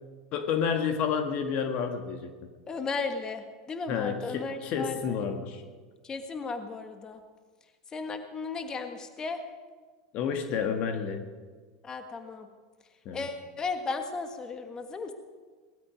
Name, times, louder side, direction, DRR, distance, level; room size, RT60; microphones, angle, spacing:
voice 1, 0.3-2.5 3.9-5.6 10.1-11.3 13.0-13.3, left 7 dB, 50° left, 7 dB, 1.6 m, -30 dB
voice 2, 2.7-5.2 6.0-7.2 7.9-9.4 11.8-12.5 13.1-15.1, left 4 dB, 25° left, 7 dB, 1.5 m, -35 dB
19.5 x 13.0 x 5.1 m, 1.5 s
hypercardioid pair, 95°, 3 cm